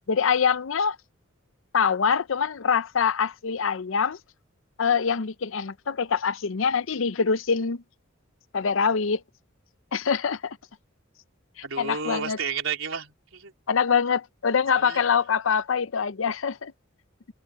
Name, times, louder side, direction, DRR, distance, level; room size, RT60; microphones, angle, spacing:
voice 1, 0.1-1.0 1.7-4.2 4.8-7.8 8.5-9.2 9.9-10.6 11.6-12.4 13.7-16.7, left 6 dB, 75° left, 0.6 m, -24 dB
voice 2, 11.6-13.5 14.8-15.0, right 6 dB, 80° right, 4.1 m, -32 dB
open air
head